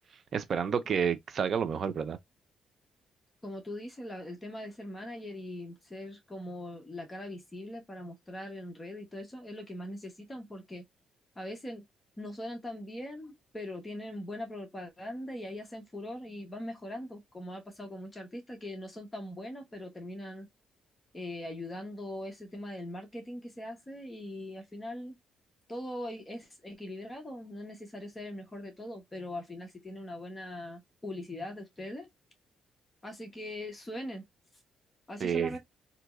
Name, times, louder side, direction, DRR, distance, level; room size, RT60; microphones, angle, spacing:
voice 1, 0.3-2.2 35.2-35.6, right 7 dB, 50° right, 0.6 m, -29 dB
voice 2, 3.4-10.8 11.4-11.8 12.2-20.5 21.1-25.2 25.7-32.1 33.0-34.2 35.1-35.6, left 1 dB, 20° left, 1.0 m, -41 dB
3.4 x 2.9 x 2.4 m
cardioid pair, 90°, 0 cm